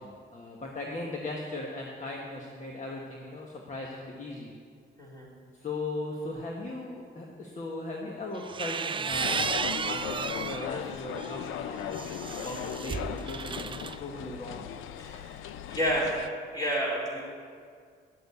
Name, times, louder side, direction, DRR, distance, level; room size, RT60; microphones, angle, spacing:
voice 1, 0.0-4.5 5.5-9.5 9.8-14.6, left 2 dB, 40° left, -1 dB, 1.5 m, -38 dB
sound 1, 8.3-10.7 11.2-14.0, right 6 dB, 25° right, 0.4 m, -34 dB
sound 2, 9.2-16.3, left 9 dB, 85° left, 0.6 m, -38 dB
voice 2, 15.0-15.3 15.7-16.2 16.5-17.2, equal, 20° left, -4 dB, 4.0 m, -29 dB
10.0 x 7.9 x 8.2 m, 2.1 s
cardioid pair, 90°, 20 cm